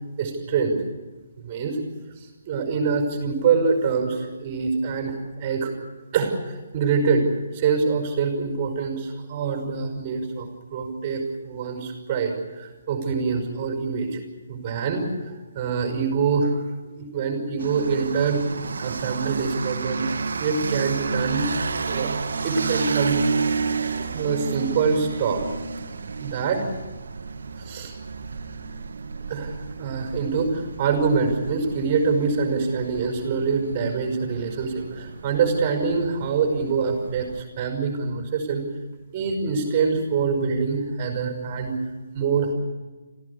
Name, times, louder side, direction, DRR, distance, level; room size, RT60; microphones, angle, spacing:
voice 1, 0.2-0.8 1.4-1.8 2.5-5.7 6.1-7.3 7.5-14.2 14.5-18.4 18.8-20.1 20.4-21.5 21.8-22.1 22.4-23.2 24.1-25.4 26.2-26.7 27.6-27.9 29.3-38.6 39.1-41.8 42.1-42.5, right 5 dB, 35° right, 4 dB, 5.4 m, -25 dB
sound 1, 17.6-37.4, right 4 dB, 65° right, 1.7 m, -31 dB
26.5 x 15.5 x 8.4 m, 1.3 s
figure-of-eight pair, 145°, 0 cm